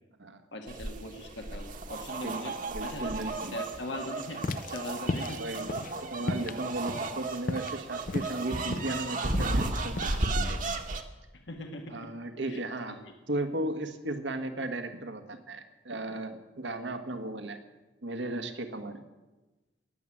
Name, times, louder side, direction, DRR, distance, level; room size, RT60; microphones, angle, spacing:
voice 1, 0.5-3.1 3.5-5.9 11.5-12.1 12.4-12.6 13.0-13.1, left 1 dB, 75° left, 4 dB, 1.6 m, -41 dB
sound 1, 0.7-11.0, right 2 dB, 45° right, 1.3 m, -34 dB
voice 2, 2.2-3.5 5.1-5.7 6.1-10.6 11.9-13.0 13.3-17.6 18.0-19.0, right 1 dB, 80° right, 7 dB, 1.6 m, -36 dB
sound 2, 4.3-10.2, left 2 dB, 50° left, 0.6 m, -36 dB
17.5 x 7.6 x 9.9 m, 1.1 s
head